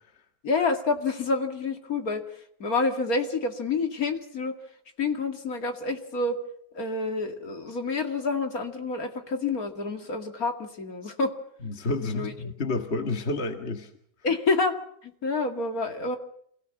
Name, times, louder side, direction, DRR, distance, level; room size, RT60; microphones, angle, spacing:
voice 1, 0.4-4.6 5.0-6.4 6.7-11.3 12.0-12.3 14.2-14.8 15.0-16.2, left 3 dB, 70° left, 5 dB, 2.6 m, -28 dB
voice 2, 11.6-13.9, left 2 dB, 45° left, 6 dB, 2.0 m, -30 dB
27.5 x 17.5 x 7.2 m, 0.68 s
omnidirectional pair, 1.6 m